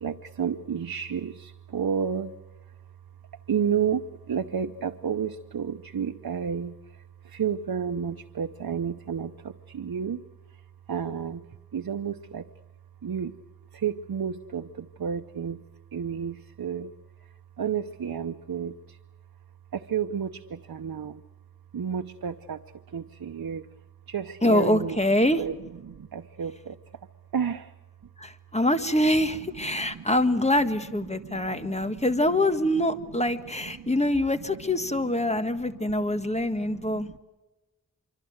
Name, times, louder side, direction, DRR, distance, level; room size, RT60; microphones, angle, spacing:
voice 1, 0.0-2.3 3.5-10.2 10.9-11.4 11.7-12.5 13.0-13.3 13.7-15.6 15.9-16.9 17.6-19.0 19.7-21.2 21.7-22.6 22.9-23.7 24.1-25.0 25.4-25.5 25.8-26.8 27.3-27.7 29.8-30.0 31.1-32.0 33.8-33.9 36.2-36.3 36.6-37.2, right 7 dB, 85° right, 8 dB, 0.8 m, -31 dB
voice 2, 24.4-25.4 28.2-37.1, left 1 dB, 20° left, 10 dB, 1.6 m, -25 dB
25.5 x 25.0 x 7.9 m, 1.1 s
wide cardioid pair, 75°, 35 cm